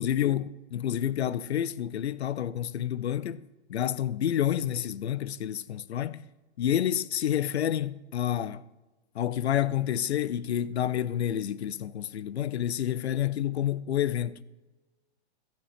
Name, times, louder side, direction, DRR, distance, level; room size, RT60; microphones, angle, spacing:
voice 1, 0.0-6.3 6.6-8.6 9.1-14.4, left 10 dB, 75° left, 0.6 m, -29 dB
15.5 x 7.3 x 5.0 m
hypercardioid pair, 120°, 33 cm